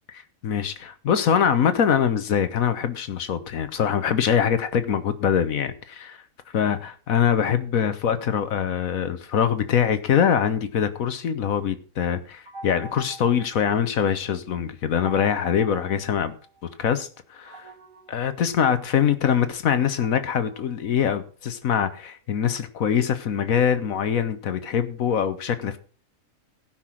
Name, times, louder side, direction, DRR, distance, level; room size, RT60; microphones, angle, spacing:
voice 1, 0.4-6.2 6.5-16.3 16.8-17.7 18.1-25.8, left 8 dB, 75° left, 12 dB, 1.4 m, -23 dB
sound 1, 12.5-14.3 15.0-16.8 17.5-21.7, right 3 dB, 55° right, 3.9 m, -45 dB
16.5 x 5.9 x 6.2 m, 0.41 s
omnidirectional pair, 1.5 m